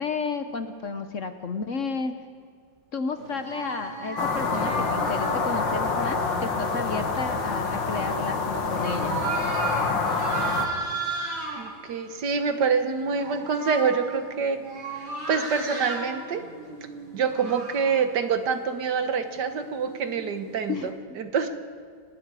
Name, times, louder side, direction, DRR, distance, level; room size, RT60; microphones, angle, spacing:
voice 1, 0.0-2.2 2.9-9.2 20.7-21.0, left 4 dB, 50° left, 9 dB, 1.0 m, -32 dB
sound 1, 3.1-11.7 12.3-12.6 12.9-18.0 19.0-20.9, right 3 dB, 75° right, 5.0 m, -35 dB
sound 2, 4.2-10.7, left 4 dB, 70° left, 2.5 m, -27 dB
voice 2, 11.6-14.6 15.0-16.4 17.1-21.5, right 5 dB, 60° right, 8 dB, 1.7 m, -26 dB
30.0 x 19.0 x 4.9 m, 2.1 s
omnidirectional pair, 2.1 m